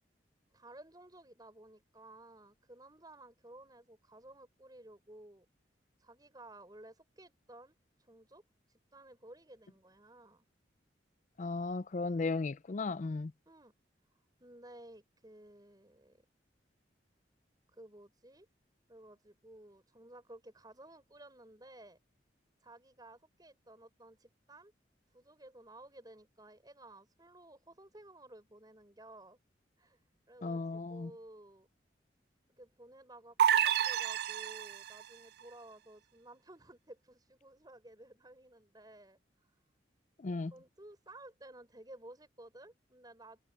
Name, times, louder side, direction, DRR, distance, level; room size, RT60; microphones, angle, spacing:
voice 1, 0.5-5.5 6.0-8.4 8.7-10.5 13.5-13.7 14.4-16.2 17.7-18.5 18.9-22.0 22.6-24.7 25.1-29.4 29.8-31.7 32.6-39.5 40.3-43.5, right 1 dB, 20° right, 5.9 m, -55 dB
voice 2, 11.4-13.3 30.4-31.1 40.2-40.5, left 3 dB, 40° left, 0.4 m, -35 dB
sound 1, 33.4-35.0, right 9 dB, 60° right, 0.3 m, -29 dB
head